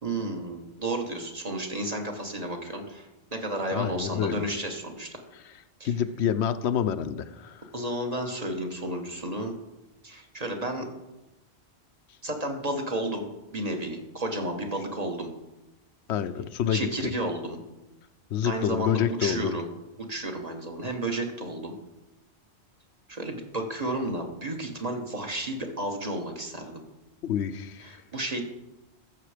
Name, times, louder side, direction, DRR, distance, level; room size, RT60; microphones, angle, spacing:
voice 1, 0.0-5.2 5.8-5.9 7.7-9.5 10.0-10.9 12.2-15.3 16.7-17.6 18.4-19.7 20.1-21.7 23.1-26.8 27.8-28.4, right 1 dB, 35° right, 3 dB, 1.4 m, -32 dB
voice 2, 3.7-4.4 5.8-7.7 16.1-17.1 18.3-19.6 27.2-28.0, left 8 dB, 90° left, 12 dB, 0.9 m, -28 dB
14.0 x 6.7 x 5.0 m, 1.0 s
omnidirectional pair, 1.1 m